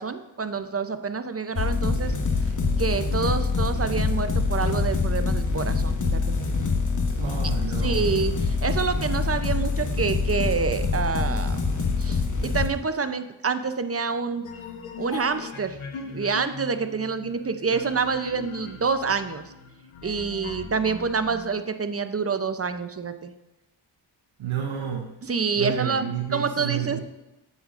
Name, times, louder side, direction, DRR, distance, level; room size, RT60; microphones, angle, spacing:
voice 1, 0.0-2.1 2.8-6.4 7.8-11.6 12.0-14.4 15.0-15.8 16.0-19.5 20.0-23.3 25.2-26.1 26.3-27.0, right 5 dB, 30° right, 10 dB, 0.6 m, -27 dB
sound 1, 1.6-12.7, left 4 dB, 40° left, 1.3 m, -25 dB
voice 2, 7.2-8.1 24.4-25.1 25.6-27.0, right 8 dB, 70° right, 2 dB, 0.9 m, -30 dB
sound 2, 14.4-21.6, left 4 dB, 85° left, 1.1 m, -39 dB
8.1 x 8.0 x 2.5 m, 0.94 s
cardioid pair, 50°, 49 cm